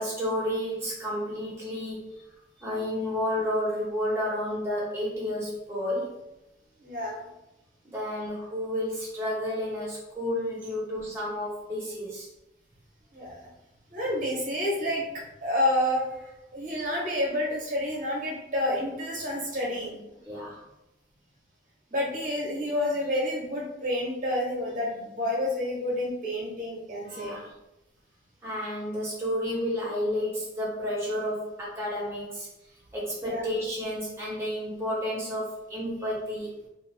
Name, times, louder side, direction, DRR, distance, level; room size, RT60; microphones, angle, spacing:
voice 1, 0.0-2.1 2.6-6.1 7.8-12.3 20.2-20.6 27.1-27.4 28.4-32.5 32.9-36.5, equal, 15° right, -6 dB, 0.8 m, -31 dB
voice 2, 6.8-7.3 13.1-13.5 13.9-15.0 15.4-20.0 21.9-27.4 33.2-33.4, left 1 dB, 45° right, -3 dB, 0.9 m, -29 dB
2.5 x 2.3 x 3.1 m, 0.94 s
head